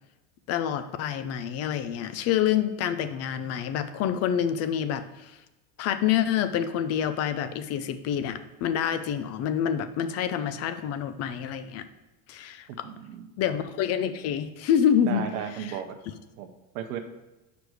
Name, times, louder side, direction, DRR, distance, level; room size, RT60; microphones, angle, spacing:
voice 1, 0.5-5.4 5.8-11.9 12.3-12.9 13.4-15.3 15.6-15.8, left 9 dB, 40° left, 11 dB, 0.4 m, -27 dB
voice 2, 12.7-13.3 15.0-15.9 16.4-16.5 16.7-17.0, right 9 dB, 90° right, 5 dB, 0.8 m, -35 dB
5.0 x 4.8 x 6.2 m, 1.0 s
supercardioid pair, 135°, 42 cm